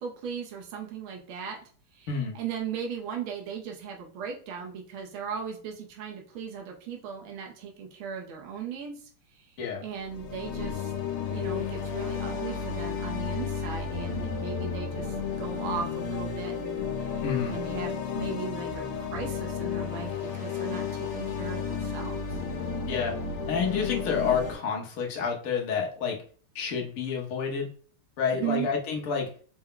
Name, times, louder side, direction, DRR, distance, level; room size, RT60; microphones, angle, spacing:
voice 1, 0.0-1.6 1.9-2.1 2.3-9.0 9.3-9.5 9.8-10.9 11.3-17.1 17.5-22.2 28.4-28.7, right 7 dB, 75° right, 0 dB, 1.6 m, -37 dB
sound 1, 10.0-24.6, left 6 dB, 75° left, 1.5 m, -32 dB
voice 2, 17.2-17.6 22.9-23.1 23.5-26.2 26.5-27.7 28.2-29.3, left 6 dB, 60° left, 0 dB, 0.9 m, -29 dB
4.6 x 2.2 x 3.7 m, 0.43 s
omnidirectional pair, 2.4 m